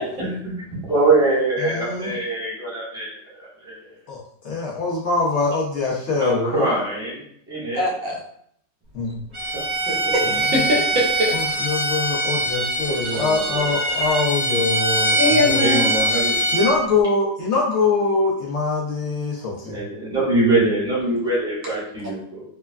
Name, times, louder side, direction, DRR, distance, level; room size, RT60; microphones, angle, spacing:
voice 1, 0.2-3.1 3.4-3.8 6.2-7.2 7.5-7.8 9.5-9.9 12.8-13.7 15.6-16.3 19.6-22.4, right 2 dB, 5° right, -8 dB, 0.9 m, -23 dB
voice 2, 1.6-2.1 4.1-6.7 8.9-9.2 10.3-10.6 11.3-15.6 16.5-19.8, left 3 dB, 80° left, -4 dB, 0.6 m, -23 dB
voice 3, 7.7-8.2 10.1-11.4 15.2-15.9, left 1 dB, 60° right, -3 dB, 0.9 m, -22 dB
Bowed string instrument, 9.3-16.7, right 1 dB, 30° right, 1.0 m, -23 dB
3.2 x 2.2 x 2.2 m, 0.67 s
omnidirectional pair, 1.9 m